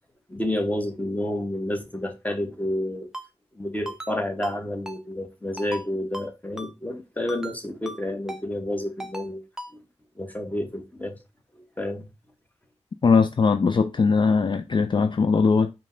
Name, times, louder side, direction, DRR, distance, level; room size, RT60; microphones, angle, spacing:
voice 1, 0.3-3.1 3.5-9.4 9.7-9.8 10.2-11.2 11.5-12.1, left 1 dB, 15° left, 1.1 m, -30 dB
Ringtone, 3.1-3.3 3.9-4.1 4.4-4.6 4.9-5.0 5.6-5.8 6.1-6.3 6.6-6.7 7.3-7.6 7.9-8.0 8.3-8.4 9.0-9.3 9.6-9.7, right 1 dB, 5° right, 0.7 m, -37 dB
voice 2, 13.0-15.7, left 5 dB, 45° left, 0.4 m, -20 dB
5.1 x 2.2 x 3.7 m
cardioid pair, 45°, 11 cm